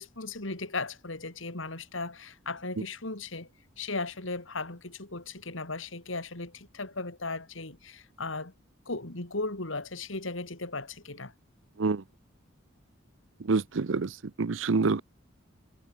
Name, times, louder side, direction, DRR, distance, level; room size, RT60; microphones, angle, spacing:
voice 1, 0.0-3.5 3.8-8.5 8.8-11.3, left 3 dB, 80° left, 3.4 m, -36 dB
voice 2, 13.4-15.0, right 4 dB, 75° right, 0.7 m, -27 dB
head